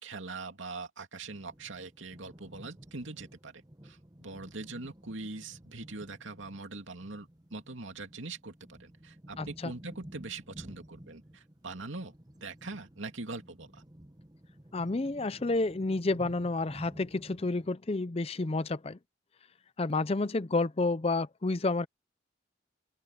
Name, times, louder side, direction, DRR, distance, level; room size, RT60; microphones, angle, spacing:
voice 1, 0.0-12.1 12.4-13.8, right 3 dB, 75° right, 2.6 m, -42 dB
sound 1, 1.2-17.7, right 1 dB, 20° right, 1.2 m, -52 dB
voice 2, 9.4-9.7 14.7-19.0 19.8-21.9, left 3 dB, 30° left, 0.5 m, -30 dB
open air
head